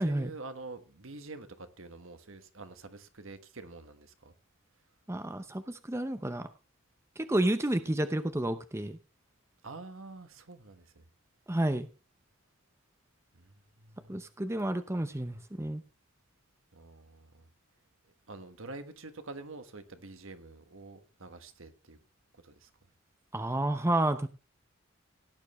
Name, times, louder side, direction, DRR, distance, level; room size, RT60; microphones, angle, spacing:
voice 1, 0.0-4.3 9.6-11.0 13.3-14.2 16.7-17.5 18.3-22.0 22.3-22.7, right 3 dB, 70° right, 1.4 m, -47 dB
voice 2, 5.1-6.5 7.2-9.0 11.5-11.9 14.1-15.8 23.3-24.3, right 1 dB, 15° right, 0.7 m, -30 dB
17.0 x 9.2 x 3.2 m
head